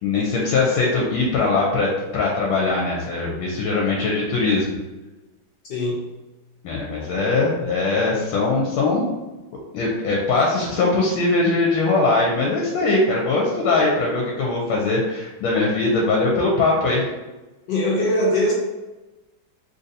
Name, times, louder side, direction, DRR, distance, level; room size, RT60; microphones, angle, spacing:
voice 1, 0.0-4.7 6.6-9.0 9.7-17.1, left 3 dB, 85° left, -2 dB, 1.4 m, -21 dB
voice 2, 5.7-6.1 17.7-18.5, left 1 dB, 65° left, -3 dB, 1.2 m, -21 dB
3.6 x 2.6 x 2.6 m, 1.1 s
omnidirectional pair, 2.3 m